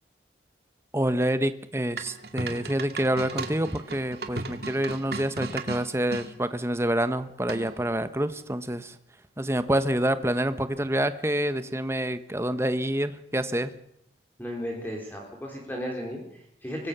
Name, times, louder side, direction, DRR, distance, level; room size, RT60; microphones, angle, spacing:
voice 1, 0.9-8.9 9.4-13.7, right 1 dB, 15° right, 11 dB, 1.2 m, -27 dB
sound 1, 2.0-6.3 7.5-7.9, right 3 dB, 60° right, 2.4 m, -35 dB
voice 2, 14.4-16.9, equal, 10° left, 0 dB, 4.2 m, -35 dB
25.0 x 20.5 x 6.9 m, 0.72 s
head